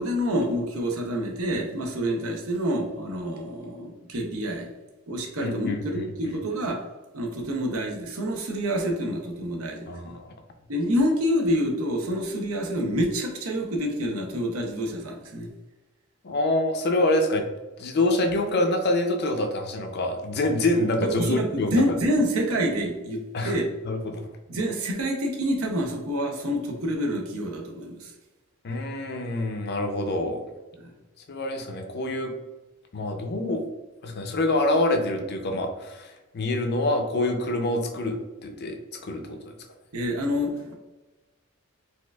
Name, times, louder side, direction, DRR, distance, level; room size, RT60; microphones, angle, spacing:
voice 1, 0.0-4.7 5.1-6.8 7.1-10.1 10.7-15.5 21.0-23.7 24.5-28.1 30.8-30.9 39.9-40.8, equal, 85° right, 2 dB, 0.7 m, -27 dB
voice 2, 5.4-6.4 9.9-10.3 16.2-17.5 17.8-21.8 23.3-23.6 23.8-24.3 28.6-30.4 31.3-32.3 32.9-33.6 34.0-38.2 38.4-38.8 39.0-39.5, left 1 dB, 50° left, 4 dB, 0.5 m, -26 dB
4.3 x 2.4 x 2.3 m, 1.1 s
head